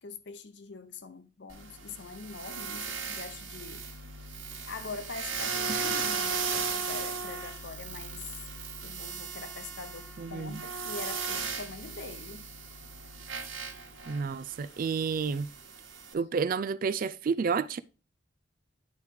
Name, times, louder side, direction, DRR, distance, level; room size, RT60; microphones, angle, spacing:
voice 1, 0.0-3.9 4.7-8.3 8.8-12.5, left 4 dB, 60° left, 0.8 m, -43 dB
sound 1, 1.5-16.1, right 5 dB, 90° right, 1.6 m, -37 dB
voice 2, 10.2-10.6 14.1-15.5 16.1-17.8, right 5 dB, 45° right, 0.3 m, -30 dB
9.9 x 3.4 x 4.6 m
head